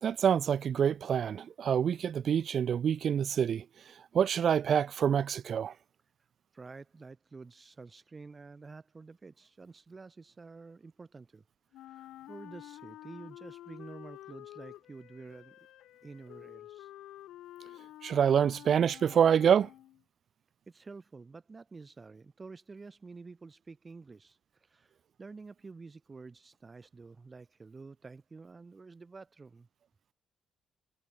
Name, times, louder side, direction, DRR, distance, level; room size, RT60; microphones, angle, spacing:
voice 1, 0.0-3.6 4.1-5.7 18.0-19.7, right 8 dB, 55° right, 0.5 m, -26 dB
voice 2, 6.5-11.4 11.7-15.6 16.0-16.9 20.7-29.7, right 4 dB, 30° right, 6.6 m, -49 dB
Wind instrument woodwind instrument, 11.7-20.0, left 14 dB, 85° left, 4.7 m, -50 dB
cardioid pair, 90°, 0 cm